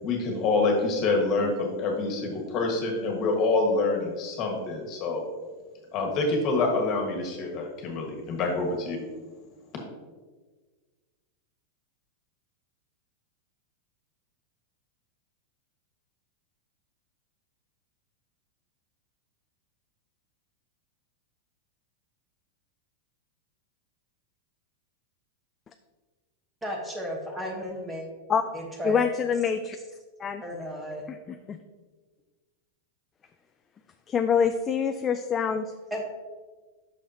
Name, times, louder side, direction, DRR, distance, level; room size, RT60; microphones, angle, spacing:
voice 1, 0.0-5.2 5.9-9.0, left 3 dB, 35° left, 1 dB, 1.7 m, -26 dB
voice 2, 26.6-28.0 28.5-29.0 30.4-31.1 35.9-36.0, equal, 10° right, 0 dB, 1.2 m, -34 dB
voice 3, 28.8-29.8 30.2-30.4 31.1-31.6 34.1-35.7, left 7 dB, 20° left, 7 dB, 0.3 m, -26 dB
8.4 x 6.4 x 2.9 m, 1.4 s
supercardioid pair, 150°, 0 cm